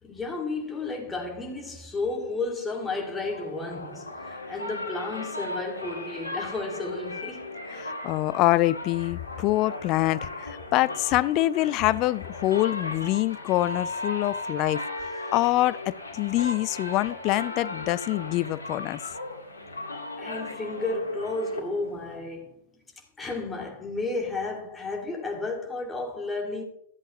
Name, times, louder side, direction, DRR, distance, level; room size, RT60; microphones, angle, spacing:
voice 1, 0.0-7.5 20.2-22.6 23.2-26.6, left 3 dB, 10° left, 2.2 m, -32 dB
sound 1, 2.8-22.2, left 2 dB, 85° left, 1.8 m, -37 dB
voice 2, 7.7-19.0, left 16 dB, 35° left, 0.4 m, -25 dB
14.0 x 7.7 x 3.0 m
figure-of-eight pair, 105°, 0 cm